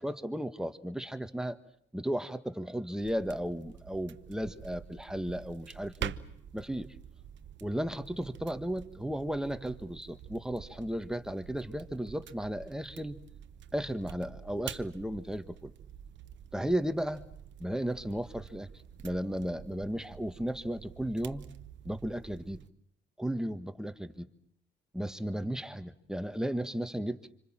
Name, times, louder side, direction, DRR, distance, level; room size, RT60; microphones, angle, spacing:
voice 1, 0.0-1.6 1.9-6.1 6.5-6.9 7.6-13.2 13.7-15.7 16.5-17.2 17.6-18.7 19.0-21.4 21.8-22.6 23.2-24.3 24.9-27.3, equal, 5° right, 9 dB, 1.6 m, -34 dB
sound 1, 3.0-22.7, right 9 dB, 65° right, 1.0 m, -47 dB
26.5 x 26.0 x 7.5 m, 0.70 s
cardioid pair, 90°, 20 cm